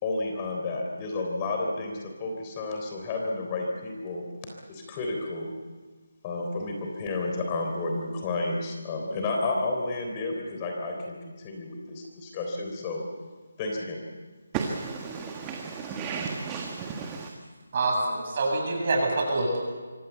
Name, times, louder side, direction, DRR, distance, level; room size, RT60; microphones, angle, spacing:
voice 1, 0.0-4.2 4.7-5.5 6.2-13.0 13.6-14.0, left 2 dB, 25° left, 1 dB, 3.5 m, -31 dB
voice 2, 14.5-17.3, right 5 dB, 15° right, 2 dB, 1.5 m, -33 dB
voice 3, 17.7-19.6, right 2 dB, 40° right, 0 dB, 8.0 m, -26 dB
25.0 x 16.5 x 8.3 m, 1.4 s
figure-of-eight pair, 165°, 0 cm